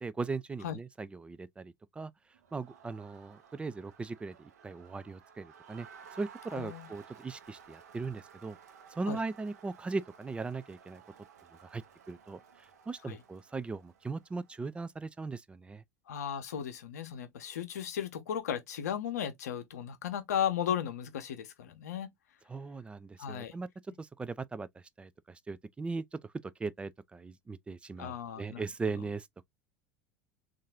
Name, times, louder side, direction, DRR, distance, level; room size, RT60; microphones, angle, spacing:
voice 1, 0.0-2.1 2.5-5.9 6.2-8.6 8.9-11.0 11.6-15.8 22.5-23.7 24.0-29.5, right 4 dB, 10° right, 0.3 m, -39 dB
Crowd, 2.3-14.9, right 7 dB, 65° right, 0.7 m, -56 dB
voice 2, 6.5-6.9 9.1-9.2 13.1-13.2 16.1-22.1 23.2-23.5 28.0-28.6, left 9 dB, 65° left, 0.8 m, -35 dB
3.6 x 2.6 x 2.9 m
figure-of-eight pair, 80°, 9 cm